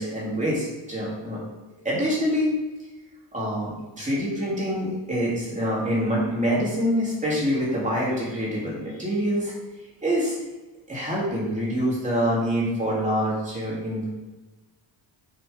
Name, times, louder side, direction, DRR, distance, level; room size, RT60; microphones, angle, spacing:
voice 1, 0.0-1.4 1.8-2.5 3.3-9.5 10.0-10.4 10.9-14.1, equal, 15° right, -6 dB, 3.3 m, -25 dB
7.4 x 7.0 x 5.5 m, 1.2 s
cardioid pair, 170°, 46 cm